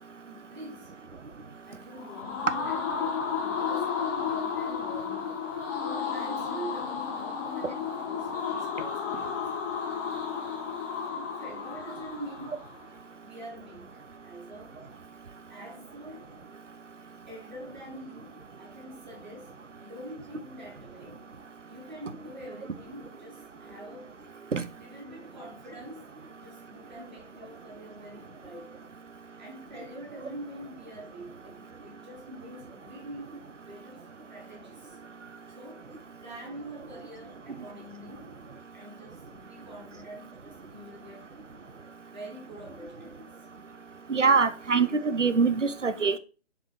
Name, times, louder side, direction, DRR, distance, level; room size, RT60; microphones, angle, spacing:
voice 1, 0.3-1.0 1.7-5.5 5.8-9.5 10.7-10.8 11.1-12.6 13.2-14.8 15.5-16.3 17.3-21.3 21.7-24.1 24.7-26.1 26.4-28.7 29.4-33.3 33.7-35.0 35.5-35.9 36.2-38.4 38.7-41.4 42.0-43.4, right 1 dB, 40° right, 2.4 m, -45 dB
sound 1, 1.9-12.8, left 6 dB, 15° left, 1.6 m, -33 dB
voice 2, 44.1-46.2, right 5 dB, 85° right, 0.8 m, -24 dB
7.6 x 4.9 x 3.1 m
figure-of-eight pair, 150°, 36 cm